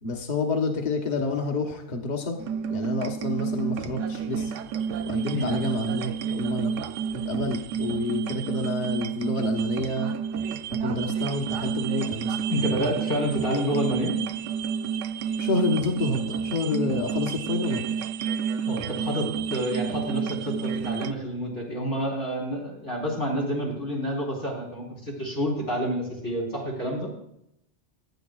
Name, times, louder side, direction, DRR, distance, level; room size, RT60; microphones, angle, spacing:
voice 1, 0.0-2.4 2.7-4.5 5.1-6.8 7.1-10.1 10.7-12.4 15.4-17.9, left 3 dB, 40° left, 2 dB, 1.2 m, -29 dB
sound 1, 2.4-21.1, right 7 dB, 90° right, 0.9 m, -30 dB
voice 2, 12.5-14.2 18.7-27.1, equal, 85° left, -3 dB, 4.3 m, -29 dB
17.5 x 11.5 x 2.4 m, 0.78 s
omnidirectional pair, 1.2 m